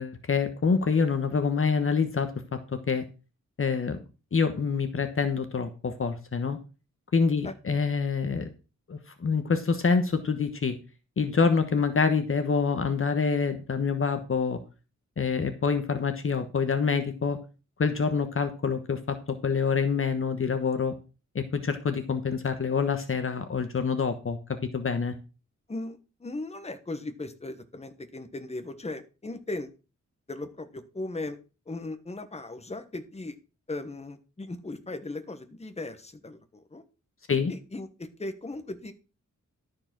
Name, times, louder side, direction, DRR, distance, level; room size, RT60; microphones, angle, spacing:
voice 1, 0.0-3.0 3.6-4.0 4.3-6.6 7.1-8.5 8.9-10.8 11.2-14.6 15.2-17.4 17.8-20.9 21.3-24.4 24.7-25.1 37.3-37.5, left 5 dB, 45° left, 9 dB, 1.2 m, -26 dB
voice 2, 25.7-29.7 30.3-31.4 31.7-33.4 33.7-36.8 37.5-38.9, left 2 dB, 20° left, 9 dB, 1.3 m, -37 dB
12.5 x 4.9 x 6.1 m, 0.33 s
wide cardioid pair, 105°, 30 cm